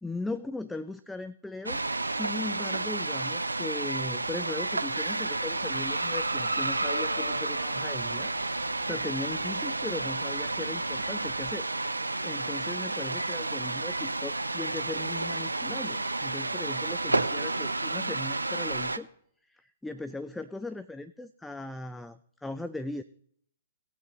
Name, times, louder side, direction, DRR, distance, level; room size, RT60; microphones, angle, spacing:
voice 1, 0.0-11.7 12.0-19.1 19.5-23.0, left 2 dB, 5° left, 12 dB, 0.4 m, -38 dB
sound 1, 1.7-19.0, right 2 dB, 85° right, 0.6 m, -31 dB
sound 2, 5.5-11.5, left 4 dB, 70° left, 0.8 m, -46 dB
19.0 x 6.5 x 3.1 m, 0.64 s
figure-of-eight pair, 120°, 0 cm